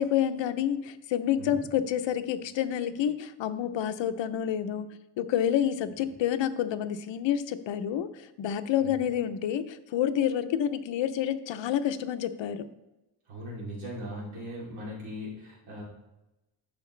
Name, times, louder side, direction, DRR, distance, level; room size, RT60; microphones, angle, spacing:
voice 1, 0.0-4.9 5.2-12.7, left 10 dB, 70° left, 11 dB, 0.7 m, -28 dB
voice 2, 13.3-15.8, equal, 80° right, -5 dB, 3.3 m, -39 dB
10.5 x 6.4 x 3.2 m, 0.98 s
wide cardioid pair, 165°, 47 cm